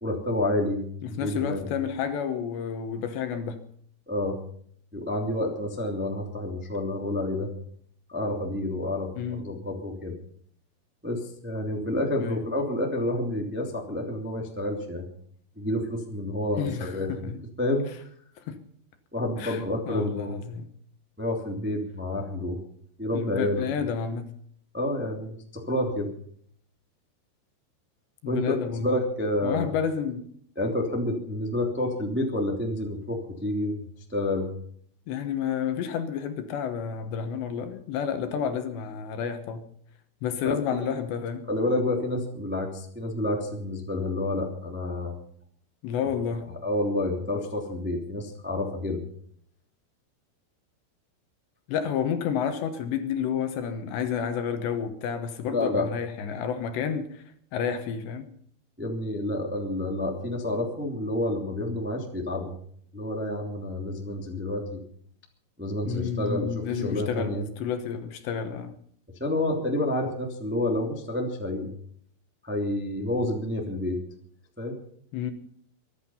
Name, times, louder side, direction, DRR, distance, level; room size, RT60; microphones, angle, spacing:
voice 1, 0.0-1.6 4.1-4.3 4.9-7.5 8.1-9.1 9.3-10.1 11.0-15.1 15.5-17.1 17.6-17.8 19.1-20.3 21.2-22.6 23.0-23.7 24.7-26.1 28.2-28.5 28.8-29.6 30.5-33.8 34.1-34.5 40.4-40.6 41.5-45.1 46.6-49.0 55.5-55.9 58.8-62.5 62.9-64.8 65.6-67.4 69.2-71.7 72.4-74.0 74.6-74.7, left 1 dB, 10° right, 0.6 m, -29 dB
voice 2, 1.0-3.6 9.2-9.4 12.2-12.4 16.6-17.4 18.5-18.6 19.4-20.7 23.1-24.3 28.2-29.0 29.4-30.3 35.1-39.6 40.2-41.5 45.8-46.5 51.7-57.2 57.5-58.3 65.8-68.7 75.1-75.3, left 7 dB, 70° left, 3.0 m, -30 dB
23.5 x 11.0 x 5.6 m
omnidirectional pair, 6.0 m